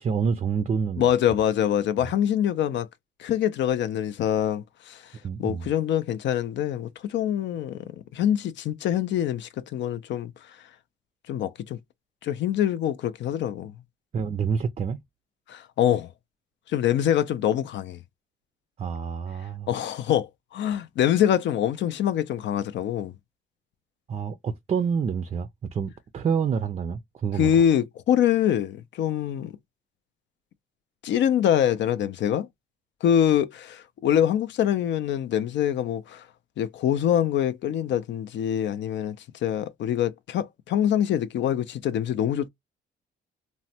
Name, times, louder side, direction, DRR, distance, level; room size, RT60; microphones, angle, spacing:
voice 1, 0.0-1.1 2.0-2.1 5.2-5.7 14.1-15.0 18.8-19.7 24.1-27.5, right 6 dB, 35° right, 0.4 m, -28 dB
voice 2, 1.0-2.9 3.2-5.0 5.4-7.8 8.1-10.3 11.3-11.8 12.2-13.7 15.5-16.1 16.7-18.0 19.7-23.1 27.4-29.5 31.0-32.5 33.0-36.2 36.6-39.2 39.4-42.5, left 10 dB, 65° left, 0.4 m, -24 dB
3.1 x 2.1 x 2.7 m
cardioid pair, 90°, 20 cm